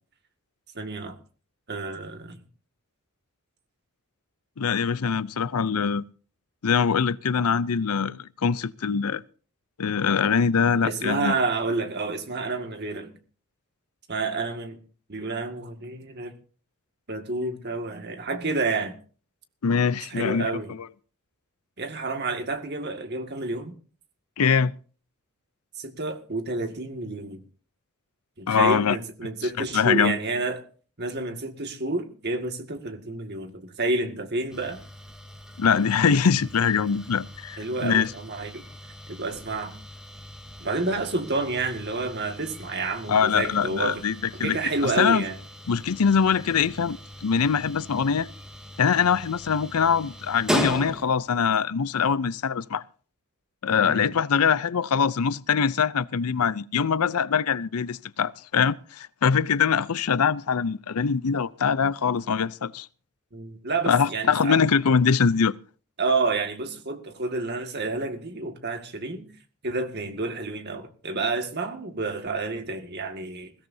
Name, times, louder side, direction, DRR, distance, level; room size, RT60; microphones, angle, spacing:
voice 1, 0.7-1.2 1.7-2.4 10.8-13.1 14.1-14.8 15.1-16.3 17.1-19.0 20.1-20.8 21.8-23.7 25.8-27.4 28.4-30.6 31.0-34.8 37.6-38.6 39.1-39.7 40.6-44.0 44.4-45.4 53.8-54.1 63.3-64.6 66.0-69.3 69.6-73.5, right 3 dB, 50° right, 2.0 m, -29 dB
voice 2, 4.6-6.0 6.6-9.2 9.8-11.4 19.6-20.5 24.4-24.7 28.5-29.0 29.6-30.2 35.6-38.1 43.1-44.6 45.0-45.2 45.7-48.3 48.8-52.8 53.6-62.9 63.9-65.5, left 6 dB, 85° left, 0.6 m, -23 dB
sound 1, 34.5-51.4, equal, 5° right, 2.1 m, -38 dB
21.0 x 16.5 x 2.8 m
head